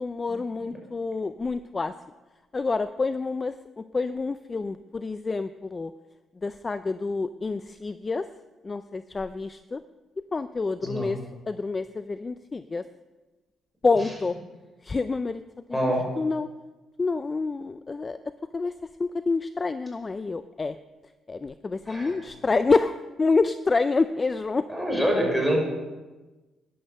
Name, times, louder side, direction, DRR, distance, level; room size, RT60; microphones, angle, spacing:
voice 1, 0.0-1.9 2.5-5.9 6.4-8.3 8.6-9.8 10.3-11.2 11.5-12.8 13.8-14.4 14.8-15.4 15.7-16.5 17.0-18.2 18.5-20.8 21.3-24.7, left 3 dB, 30° left, 12 dB, 0.5 m, -27 dB
voice 2, 15.7-16.0 21.9-22.1 24.7-25.6, equal, 5° left, 0 dB, 5.6 m, -25 dB
14.0 x 11.0 x 6.6 m, 1.2 s
cardioid pair, 90°, 0 cm